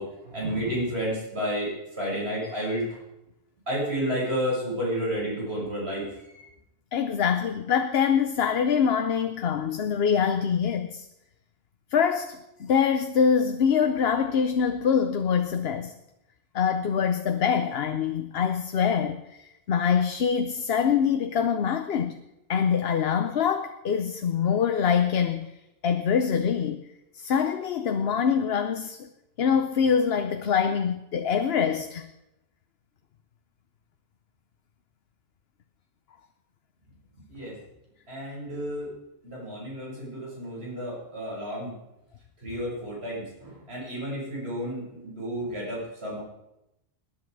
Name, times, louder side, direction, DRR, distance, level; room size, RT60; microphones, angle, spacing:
voice 1, 0.0-2.9 3.7-6.4 37.3-37.5 38.1-38.9 39.2-41.8 42.4-46.2, equal, 85° right, -5 dB, 6.6 m, -31 dB
voice 2, 6.9-11.0 11.9-15.9 16.5-19.2 19.7-22.2 22.5-25.5 25.8-26.8 27.1-29.0 29.4-32.0, left 7 dB, 75° left, 8 dB, 1.0 m, -24 dB
19.0 x 10.5 x 4.7 m, 0.88 s
omnidirectional pair, 1.1 m